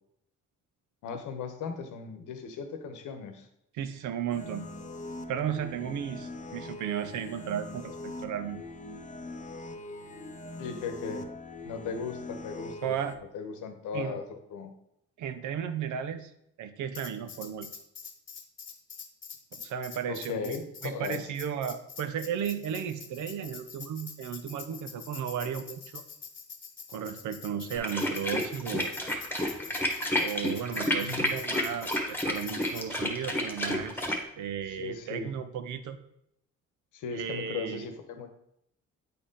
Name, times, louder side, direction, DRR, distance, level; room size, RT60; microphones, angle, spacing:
voice 1, 1.0-3.5 10.6-11.3 11.6-13.0 13.3-14.7 20.1-21.2 31.0-31.3 34.7-35.3 36.9-38.3, left 5 dB, 80° left, 7 dB, 1.1 m, -37 dB
voice 2, 3.7-4.7 5.3-8.6 12.8-13.2 13.9-14.2 15.2-16.3 16.6-17.7 19.5-26.0 26.9-28.9 30.2-36.0 37.1-37.9, right 8 dB, 80° right, 10 dB, 0.8 m, -35 dB
sound 1, 4.3-13.1, left 2 dB, 25° left, 0.7 m, -42 dB
Tambourine, 16.9-32.9, left 6 dB, 40° left, 1.1 m, -45 dB
sound 2, 27.7-34.2, left 1 dB, 5° left, 1.4 m, -30 dB
8.6 x 4.2 x 3.8 m, 0.76 s
cardioid pair, 90°, 30 cm